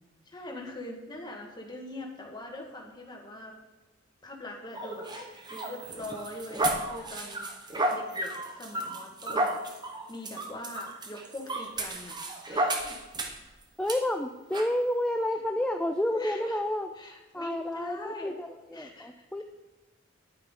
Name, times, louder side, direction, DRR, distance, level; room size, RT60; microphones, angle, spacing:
voice 1, 0.3-3.5 4.2-7.4 7.9-9.6 10.1-12.2 12.5-13.0 16.1-16.6 17.0-18.3 18.7-19.4, left 1 dB, 20° left, 0 dB, 1.5 m, -42 dB
sound 1, 4.7-13.5 13.9-14.0 14.5-14.7, right 1 dB, 20° right, 0.9 m, -33 dB
voice 2, 13.8-16.9 17.3-19.4, left 1 dB, 5° left, 5 dB, 0.4 m, -30 dB
9.8 x 9.1 x 3.7 m, 1.2 s
head